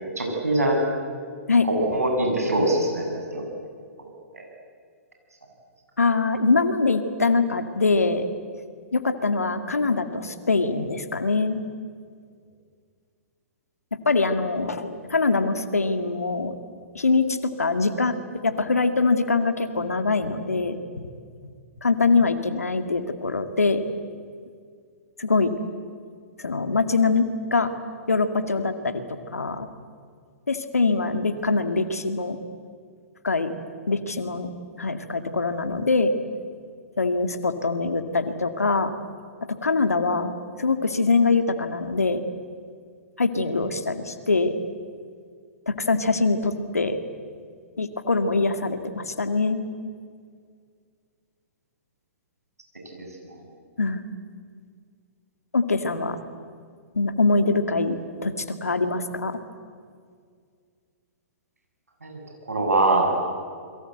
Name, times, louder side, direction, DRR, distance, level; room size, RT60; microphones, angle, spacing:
voice 1, 0.2-0.8 1.6-3.4 4.0-4.1 4.3-4.4 53.3-53.4 62.0-62.2 62.5-63.1, right 2 dB, 85° right, 1 dB, 7.8 m, -23 dB
voice 2, 6.0-8.2 8.9-11.6 13.9-16.6 16.9-18.2 18.4-20.8 21.8-23.8 25.2-25.5 26.4-27.7 28.1-29.7 30.5-32.4 33.2-33.5 33.9-34.5 34.8-36.1 37.0-38.9 39.6-42.2 43.2-44.6 45.7-47.0 47.8-49.6 53.8-54.1 55.5-56.2 56.9-59.4, left 3 dB, 85° left, 9 dB, 2.3 m, -23 dB
29.0 x 22.5 x 8.1 m, 2.1 s
figure-of-eight pair, 115°, 8 cm